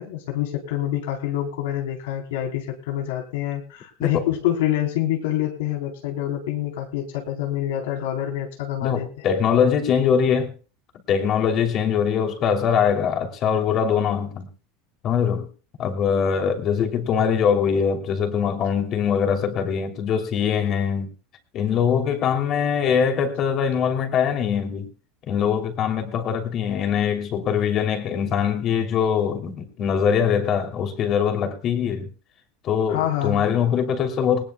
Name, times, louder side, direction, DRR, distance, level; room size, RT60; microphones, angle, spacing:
voice 1, 0.0-9.3 32.9-33.5, left 12 dB, 90° left, 3.8 m, -26 dB
voice 2, 8.8-10.5 11.1-14.5 15.0-15.5 15.8-21.1 21.5-24.9 25.3-32.1 32.6-34.4, left 7 dB, 35° left, 2.9 m, -22 dB
20.0 x 19.5 x 2.3 m
supercardioid pair, 155°, 0 cm